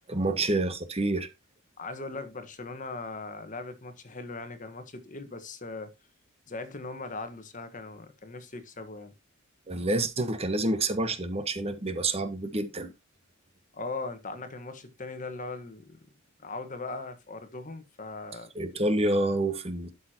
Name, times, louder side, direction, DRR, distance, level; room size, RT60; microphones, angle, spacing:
voice 1, 0.1-1.3 9.7-12.9 18.5-19.9, right 2 dB, 30° right, 1.2 m, -28 dB
voice 2, 1.8-5.9 6.5-9.1 13.7-16.0 16.4-18.5, left 3 dB, 35° left, 1.4 m, -39 dB
12.0 x 6.6 x 2.9 m
head